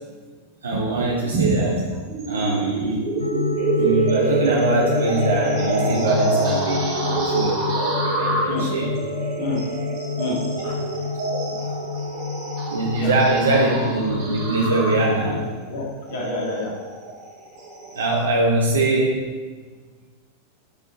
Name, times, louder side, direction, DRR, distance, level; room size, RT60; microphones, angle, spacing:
voice 1, 0.6-1.8 2.3-3.0 3.8-8.9 11.3-11.6 12.7-15.5 18.0-19.2, right 2 dB, 70° right, -1 dB, 0.9 m, -22 dB
sound 1, 1.3-18.2, right 2 dB, 45° right, 2.4 m, -27 dB
sound 2, 3.2-15.5, left 4 dB, 80° left, 0.4 m, -29 dB
voice 2, 10.2-10.8 13.0-13.1 15.7-16.8, left 1 dB, 55° left, -2 dB, 2.0 m, -28 dB
11.0 x 4.6 x 4.1 m, 1.5 s
figure-of-eight pair, 90°, 0 cm